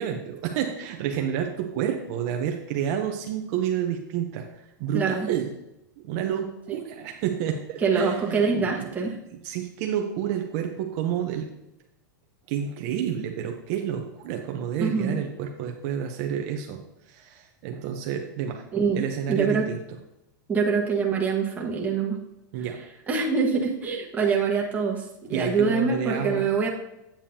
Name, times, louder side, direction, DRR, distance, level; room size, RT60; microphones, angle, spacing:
voice 1, 0.0-5.5 6.0-8.9 9.4-11.5 12.5-16.8 17.1-18.6 18.9-19.8 22.5-22.8 25.3-26.5, right 9 dB, 50° right, 3 dB, 0.8 m, -29 dB
voice 2, 4.9-5.3 6.7-6.8 7.8-9.2 14.8-15.2 18.7-19.0 19.3-19.7 20.5-22.2 22.6-22.7 23.1-26.7, right 5 dB, 15° right, -2 dB, 1.4 m, -24 dB
8.8 x 7.2 x 2.8 m, 0.89 s
supercardioid pair, 140°, 10 cm